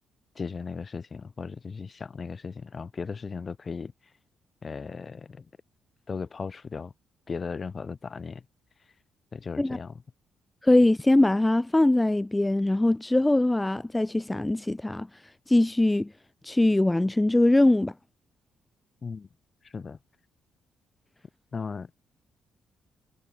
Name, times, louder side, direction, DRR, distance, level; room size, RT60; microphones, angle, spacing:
voice 1, 0.3-3.9 4.6-5.5 6.1-6.9 7.3-8.4 9.3-10.0 19.0-19.3 19.6-20.0 21.5-21.9, left 5 dB, 40° left, 6.7 m, -36 dB
voice 2, 10.6-15.2 15.5-16.1 16.4-17.9, left 1 dB, 15° left, 2.8 m, -22 dB
figure-of-eight pair, 40°, 0 cm